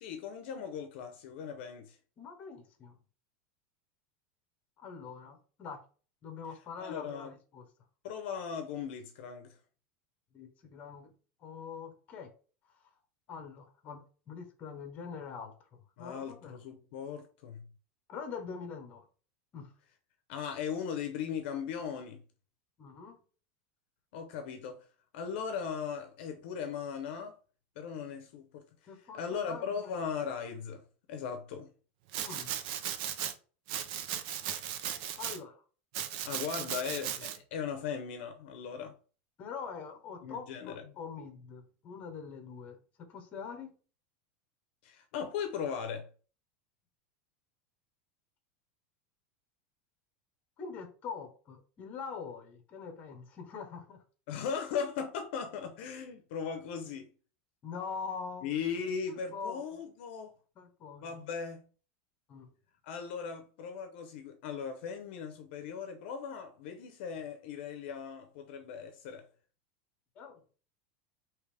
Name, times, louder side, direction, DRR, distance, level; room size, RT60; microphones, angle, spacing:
voice 1, 0.0-2.0 6.8-7.3 8.0-9.6 16.0-17.6 20.3-22.2 24.1-24.9 25.1-27.4 27.8-28.6 29.1-30.8 31.1-31.7 36.3-38.9 40.2-40.8 44.8-46.1 54.3-57.1 58.4-60.3 61.0-61.7 62.8-69.3, left 6 dB, 60° left, 0.7 m, -38 dB
voice 2, 2.2-3.0 4.8-5.8 6.2-7.6 10.3-11.1 11.4-12.3 13.3-15.5 16.0-16.6 18.1-19.0 19.5-19.7 22.8-23.2 28.9-29.9 32.1-32.7 35.2-35.6 36.9-37.0 39.4-42.8 43.1-43.7 50.6-54.0 57.6-58.5 59.3-59.6 60.6-61.2 62.3-62.5 70.1-70.4, left 5 dB, 25° left, 1.0 m, -44 dB
Domestic sounds home sounds, 32.1-33.3 33.7-35.4 35.9-37.4, right 10 dB, 45° right, 0.5 m, -37 dB
4.9 x 3.0 x 3.4 m
supercardioid pair, 175°, 7 cm